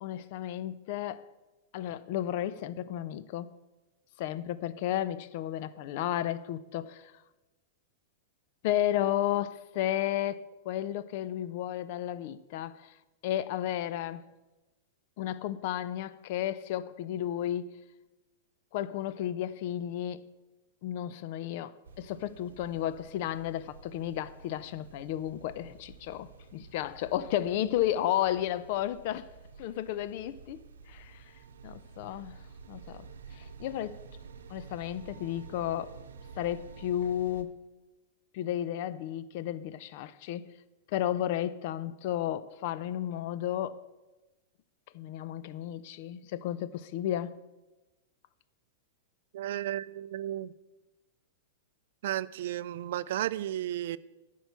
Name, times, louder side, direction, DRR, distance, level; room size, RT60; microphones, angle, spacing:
voice 1, 0.0-1.3 1.7-3.5 4.2-7.1 8.6-12.9 13.2-14.2 15.2-17.7 18.7-20.3 20.8-29.3 29.6-30.6 30.9-31.2 31.6-32.3 32.7-33.1 33.3-34.0 34.5-36.0 36.4-37.6 38.3-40.5 40.9-43.8 44.9-47.4, left 12 dB, 55° left, 0.5 m, -33 dB
sound 1, 21.8-37.4, right 5 dB, 90° right, 0.8 m, -50 dB
voice 2, 49.3-50.5 52.0-54.0, right 12 dB, 65° right, 0.3 m, -33 dB
10.5 x 4.6 x 6.9 m
hypercardioid pair, 130°, 0 cm